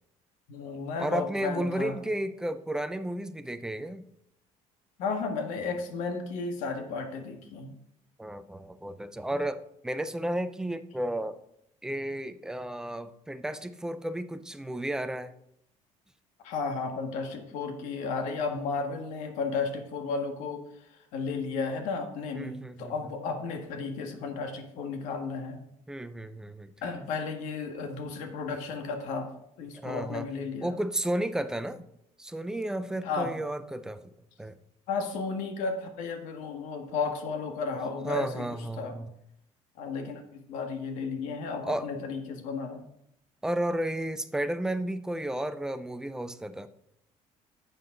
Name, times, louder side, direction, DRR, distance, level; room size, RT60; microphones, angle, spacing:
voice 1, 0.5-2.0 5.0-7.7 16.4-25.6 26.8-29.3 29.6-30.8 33.0-33.3 34.9-38.9 39.8-42.9, left 4 dB, 80° left, 4 dB, 1.7 m, -33 dB
voice 2, 1.0-4.0 8.2-11.4 11.8-15.3 22.4-22.9 25.9-26.7 29.7-30.3 30.6-31.9 32.2-34.1 34.4-34.6 38.0-39.1 41.7-41.9 43.4-46.7, right 1 dB, 5° right, 11 dB, 0.4 m, -33 dB
10.5 x 7.7 x 3.8 m, 0.76 s
cardioid pair, 170°, 12 cm